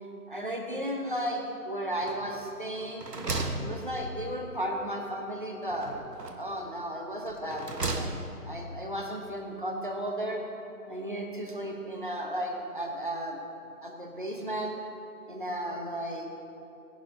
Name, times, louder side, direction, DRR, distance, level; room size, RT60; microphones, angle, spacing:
voice 1, 0.3-3.1 3.6-5.9 6.4-8.1 8.5-10.4 10.9-13.4 13.8-14.8 15.3-16.3, right 1 dB, 35° right, 1 dB, 1.0 m, -34 dB
sound 1, 2.0-2.5 2.8-4.4 5.7-6.6 7.3-8.5, right 2 dB, 85° right, 1.3 m, -35 dB
18.5 x 11.0 x 2.7 m, 2.8 s
figure-of-eight pair, 175°, 46 cm